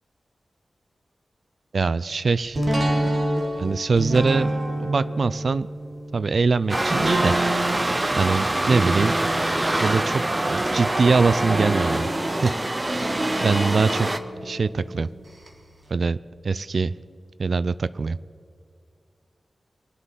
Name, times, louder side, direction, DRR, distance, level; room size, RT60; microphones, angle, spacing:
voice 1, 1.7-2.6 3.5-5.7 6.1-7.4 8.2-9.2 9.8-10.2 10.5-12.1 12.4-12.6 12.9-14.1 14.4-15.1 15.9-16.2 16.4-16.9 17.4-18.2, right 4 dB, 65° right, 17 dB, 0.4 m, -23 dB
sound 1, 2.5-15.5 15.9-16.0, right 1 dB, 45° right, 2.0 m, -29 dB
sound 2, 6.7-14.2, right 1 dB, 25° right, 0.8 m, -25 dB
24.0 x 8.1 x 5.7 m, 2.3 s
wide cardioid pair, 90°, 0 cm